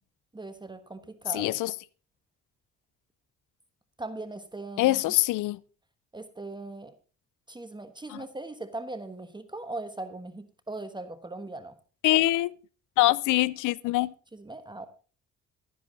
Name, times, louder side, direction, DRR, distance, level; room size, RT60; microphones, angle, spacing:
voice 1, 0.3-1.6 4.0-5.0 6.1-6.9 7.5-11.8 14.3-14.9, right 2 dB, 15° right, 1.1 m, -39 dB
voice 2, 1.3-1.7 4.8-5.6 12.0-12.5 13.0-14.1, left 17 dB, 85° left, 0.5 m, -24 dB
12.5 x 10.5 x 3.8 m
cardioid pair, 90°, 30 cm